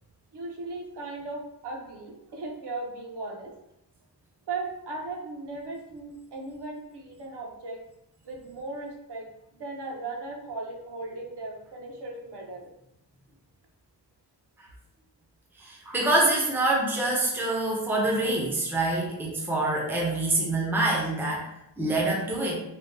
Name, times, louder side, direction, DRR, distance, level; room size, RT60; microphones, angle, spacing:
voice 1, 0.3-3.5 4.5-7.8 8.2-9.3 9.6-12.7, right 3 dB, 75° right, 0 dB, 0.7 m, -37 dB
voice 2, 15.6-21.4 21.8-22.6, right 2 dB, 5° right, -2 dB, 0.4 m, -26 dB
3.4 x 2.1 x 2.5 m, 0.84 s
wide cardioid pair, 165°, 42 cm